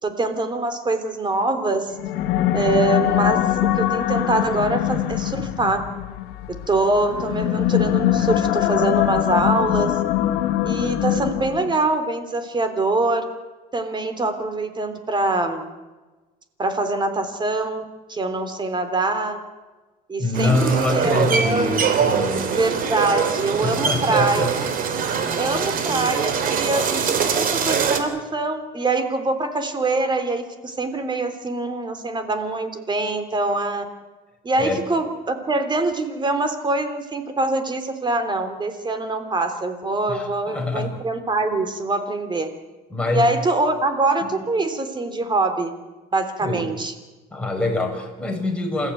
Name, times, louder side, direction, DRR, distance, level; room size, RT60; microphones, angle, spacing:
voice 1, 0.0-2.0 2.5-5.8 6.7-10.0 10.6-13.3 13.7-15.6 16.6-19.4 20.1-21.8 22.4-24.7 25.4-33.9 34.4-42.5 43.1-45.7 46.1-46.9, right 2 dB, 25° right, 9 dB, 3.5 m, -24 dB
sound 1, 1.9-11.8, left 13 dB, 90° left, 1.6 m, -22 dB
voice 2, 20.2-22.5 23.6-24.5 25.0-25.3 34.5-34.8 40.1-40.9 42.9-43.2 44.2-44.3 46.4-46.7 47.3-48.9, left 2 dB, 5° left, 1 dB, 6.5 m, -25 dB
sound 2, 20.3-28.0, right 6 dB, 55° right, 3.2 m, -23 dB
28.5 x 15.0 x 9.4 m, 1.2 s
cardioid pair, 110°, 17 cm